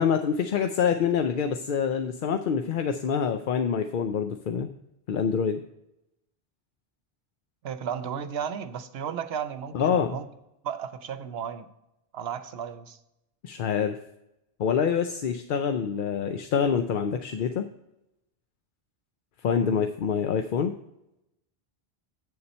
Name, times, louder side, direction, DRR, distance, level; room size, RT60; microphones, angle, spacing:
voice 1, 0.0-4.7 5.1-5.6 9.7-10.2 13.4-14.0 14.6-17.7 19.4-20.7, left 7 dB, 60° left, 7 dB, 0.7 m, -26 dB
voice 2, 7.6-10.3 10.6-11.7 12.1-13.0 19.6-19.9, right 8 dB, 75° right, 12 dB, 0.9 m, -34 dB
8.5 x 6.9 x 4.2 m, 0.86 s
omnidirectional pair, 1.0 m